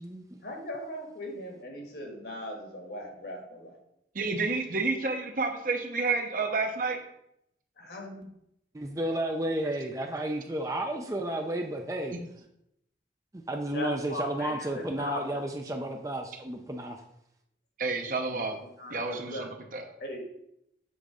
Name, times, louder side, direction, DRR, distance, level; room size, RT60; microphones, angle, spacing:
voice 1, 0.4-3.8 7.8-8.3 13.7-15.5 18.3-18.5 18.8-19.4 20.0-20.4, left 1 dB, 60° left, 1 dB, 1.5 m, -39 dB
voice 2, 4.1-7.0 12.1-12.2 17.8-18.6 18.9-19.9, right 3 dB, 45° right, 3 dB, 0.8 m, -30 dB
voice 3, 8.7-12.1 13.5-17.0, right 1 dB, 20° right, 3 dB, 0.5 m, -32 dB
7.2 x 3.9 x 5.0 m, 0.79 s
head